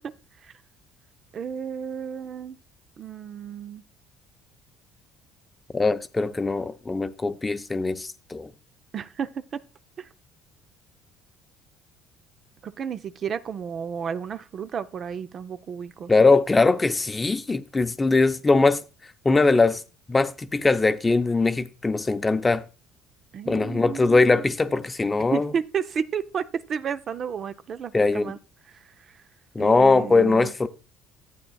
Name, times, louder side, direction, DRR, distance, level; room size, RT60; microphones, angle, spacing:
voice 1, 1.3-2.6 3.0-3.8 8.9-9.3 10.0-10.1 12.6-16.4 23.3-24.4 25.3-28.4 29.6-30.5, right 7 dB, 50° right, 0.5 m, -32 dB
voice 2, 5.7-8.5 16.1-18.8 19.2-19.8 20.1-22.6 23.5-25.5 27.9-28.3 29.5-30.7, left 3 dB, 20° left, 0.6 m, -21 dB
11.5 x 8.6 x 2.3 m
supercardioid pair, 75°, 0 cm